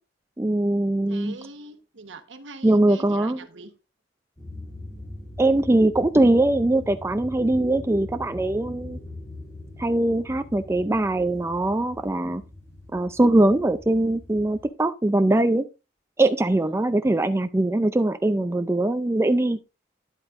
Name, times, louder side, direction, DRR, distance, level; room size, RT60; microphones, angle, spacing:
voice 1, 0.4-1.4 2.6-3.4 5.4-9.0 9.8-12.4 12.9-15.7 16.2-19.6, right 1 dB, 15° right, 0.4 m, -21 dB
voice 2, 1.1-3.7, right 3 dB, 80° right, 1.2 m, -42 dB
sound 1, 4.4-14.7, left 1 dB, 15° left, 3.1 m, -41 dB
10.5 x 8.2 x 2.5 m
head